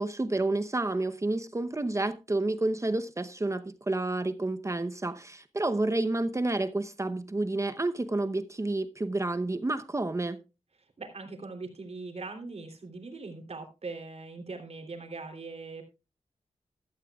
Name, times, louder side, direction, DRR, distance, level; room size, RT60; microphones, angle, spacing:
voice 1, 0.0-10.4, right 2 dB, 25° right, 0.8 m, -30 dB
voice 2, 10.8-15.8, right 3 dB, 60° right, 3.0 m, -41 dB
14.5 x 13.0 x 2.3 m
wide cardioid pair, 95°, 12 cm